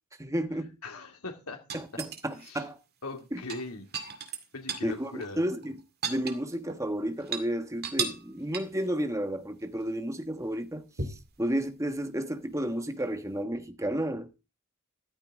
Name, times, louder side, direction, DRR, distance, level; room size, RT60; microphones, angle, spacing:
voice 1, 0.2-0.8 1.7-2.8 3.3-3.4 4.8-5.8 6.0-14.3, right 1 dB, 15° right, 1.3 m, -32 dB
voice 2, 0.8-1.6 2.4-2.7 3.0-4.2 4.5-5.4, left 2 dB, 80° left, 2.5 m, -40 dB
sound 1, 1.7-2.5 3.4-4.9 5.2-5.3 5.6-6.8 7.2-7.5 7.8-8.3 8.5-8.9 11.0-11.3 13.0-13.1, right 5 dB, 45° right, 2.0 m, -35 dB
14.0 x 13.0 x 3.7 m
head